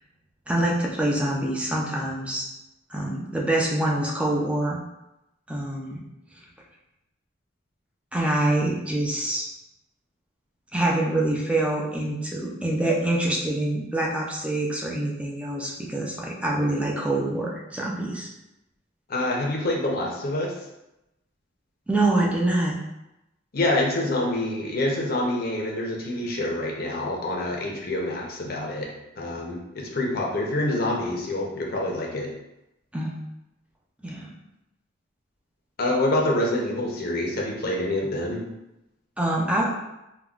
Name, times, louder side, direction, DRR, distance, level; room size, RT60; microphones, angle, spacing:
voice 1, 0.5-2.5 2.9-4.8 5.5-6.0 8.1-9.5 10.7-18.3 21.9-22.8 32.9-33.1 34.0-34.3 39.2-39.7, right 1 dB, 5° right, -3 dB, 0.4 m, -25 dB
voice 2, 19.1-20.5 23.5-28.9 29.2-32.3 35.8-38.4, left 1 dB, 50° left, -1 dB, 0.6 m, -26 dB
3.5 x 2.2 x 2.4 m, 0.91 s
head